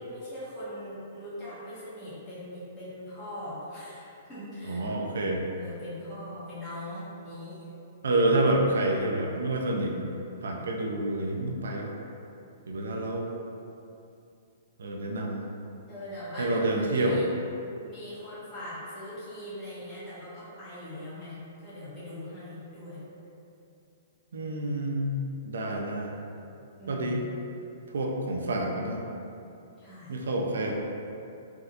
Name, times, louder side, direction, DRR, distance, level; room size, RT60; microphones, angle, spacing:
voice 1, 0.0-4.9 5.6-7.6 15.9-16.6 16.9-17.3 17.8-23.0 26.8-27.2 29.8-30.1, left 1 dB, 20° left, -14 dB, 1.3 m, -41 dB
voice 2, 4.6-5.4 8.0-10.1 10.4-11.9 12.7-13.3 14.8-15.4 16.4-17.2 24.3-26.1 26.9-27.2 27.9-29.0 30.1-30.7, right 1 dB, 85° right, 0 dB, 0.4 m, -28 dB
3.4 x 2.7 x 2.5 m, 2.7 s
hypercardioid pair, 140°, 0 cm